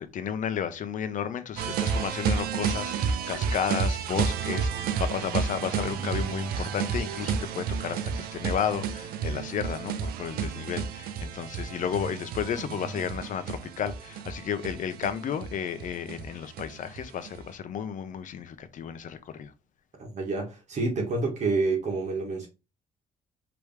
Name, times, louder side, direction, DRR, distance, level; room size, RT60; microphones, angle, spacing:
voice 1, 0.0-19.5, left 8 dB, 60° left, 0.7 m, -33 dB
sound 1, 1.6-17.4, right 6 dB, 85° right, 0.6 m, -31 dB
voice 2, 20.0-22.5, right 3 dB, 50° right, 1.7 m, -28 dB
4.9 x 3.0 x 3.3 m
cardioid pair, 105°, 15 cm